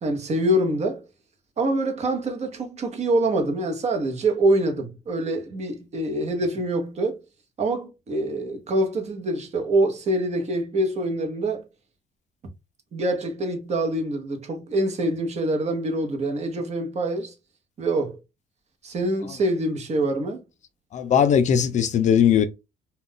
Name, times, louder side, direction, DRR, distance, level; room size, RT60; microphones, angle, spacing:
voice 1, 0.0-1.0 1.6-7.2 7.6-11.7 12.9-17.3 17.8-18.2 18.8-20.4, right 1 dB, 40° right, 0.9 m, -25 dB
voice 2, 20.9-22.4, left 8 dB, 45° left, 0.4 m, -19 dB
2.4 x 2.2 x 3.5 m
cardioid pair, 110°, 17 cm